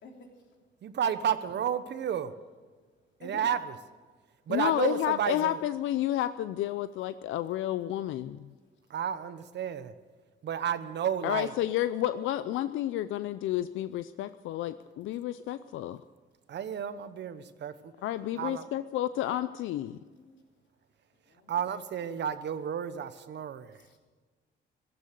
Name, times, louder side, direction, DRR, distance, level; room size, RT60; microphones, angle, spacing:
voice 1, 0.0-0.3 3.2-3.5 19.9-20.4 21.3-21.7 23.8-24.0, left 3 dB, 65° left, 1 dB, 3.3 m, -50 dB
voice 2, 0.8-2.3 3.2-3.8 4.5-5.6 8.9-9.9 10.5-11.5 16.5-17.7 18.4-18.6 21.5-23.8, right 8 dB, 60° right, 12 dB, 1.1 m, -31 dB
voice 3, 4.5-8.5 11.2-16.0 18.0-20.0, left 13 dB, 85° left, 13 dB, 0.5 m, -31 dB
15.0 x 13.5 x 6.6 m, 1.4 s
cardioid pair, 90°, 20 cm